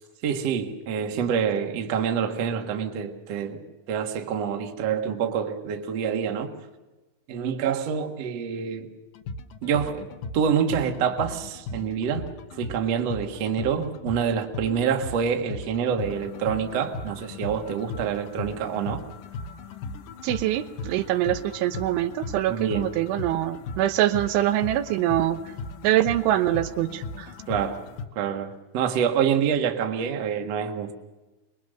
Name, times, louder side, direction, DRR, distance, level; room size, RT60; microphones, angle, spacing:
voice 1, 0.2-3.6 3.9-6.5 7.3-8.9 9.6-10.1 10.3-12.2 12.6-19.0 22.5-22.9 27.5-27.8 28.2-30.9, right 7 dB, 55° right, 4 dB, 1.9 m, -26 dB
sound 1, 9.1-28.1, left 3 dB, 65° left, 2.3 m, -37 dB
voice 2, 20.2-25.4 25.8-27.3, right 13 dB, 85° right, 10 dB, 3.4 m, -24 dB
25.5 x 22.0 x 6.6 m, 1.1 s
omnidirectional pair, 5.4 m